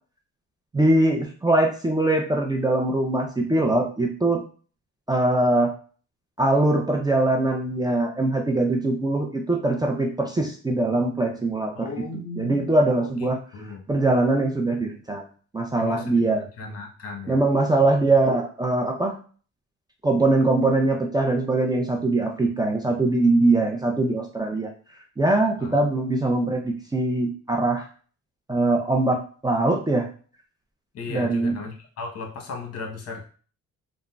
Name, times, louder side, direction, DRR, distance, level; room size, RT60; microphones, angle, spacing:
voice 1, 0.7-4.4 5.1-5.7 6.4-11.9 12.4-13.4 13.9-15.2 15.5-16.4 17.3-19.2 20.0-24.7 25.2-27.9 28.5-30.1 31.1-31.6, right 2 dB, 15° right, 0 dB, 0.4 m, -22 dB
voice 2, 11.7-12.7 13.5-13.8 15.8-16.1 16.6-17.4 25.6-25.8 30.9-33.2, left 3 dB, 50° left, 1 dB, 0.9 m, -36 dB
3.7 x 2.0 x 2.3 m, 0.40 s
cardioid pair, 90°, 30 cm